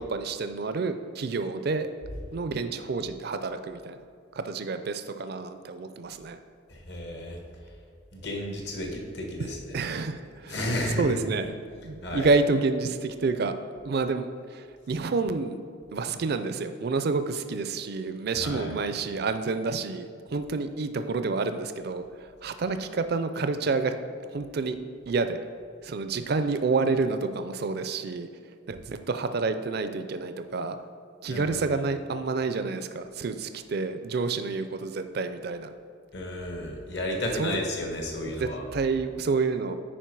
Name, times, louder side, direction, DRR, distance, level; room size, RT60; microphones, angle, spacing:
voice 1, 0.0-1.9 2.3-4.0 4.3-6.4 9.7-10.7 10.9-11.5 11.8-13.5 13.8-15.6 15.9-22.0 22.4-24.0 24.3-24.8 25.1-25.4 25.8-28.3 28.7-30.8 31.2-35.7 37.4-37.6 38.3-39.7, right 4 dB, 55° right, 9 dB, 0.4 m, -29 dB
voice 2, 6.7-7.4 8.1-9.8 10.5-11.2 12.0-12.3 18.4-18.7 31.3-31.6 36.1-38.6, left 1 dB, 60° left, 1 dB, 1.4 m, -32 dB
10.0 x 4.5 x 4.6 m, 2.2 s
head